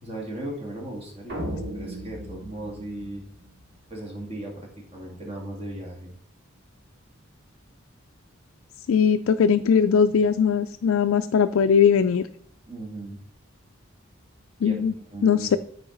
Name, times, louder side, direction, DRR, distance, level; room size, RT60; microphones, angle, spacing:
voice 1, 0.0-3.2 3.9-6.1 12.7-13.2 14.6-14.8 15.1-15.5, right 1 dB, 30° right, -1 dB, 2.2 m, -37 dB
sound 1, 1.3-3.8, equal, 50° right, 2.2 m, -36 dB
voice 2, 8.9-12.3 14.6-14.9 15.2-15.6, left 7 dB, 85° left, 8 dB, 0.4 m, -20 dB
13.0 x 4.7 x 3.9 m, 0.67 s
head